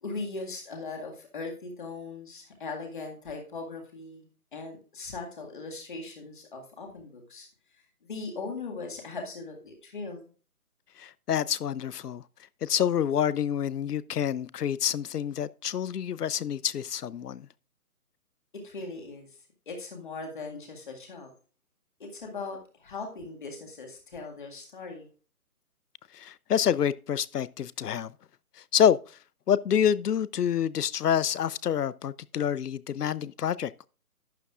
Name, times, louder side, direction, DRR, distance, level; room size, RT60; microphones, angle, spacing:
voice 1, 0.0-7.5 8.0-10.2 18.5-19.3 19.7-21.3 22.0-25.1, left 3 dB, 35° left, 2.0 m, -39 dB
voice 2, 11.0-12.2 12.6-17.5 26.1-28.1 28.7-29.0 29.5-33.9, left 9 dB, 85° left, 0.7 m, -27 dB
12.0 x 9.7 x 2.4 m
hypercardioid pair, 175°, 45 cm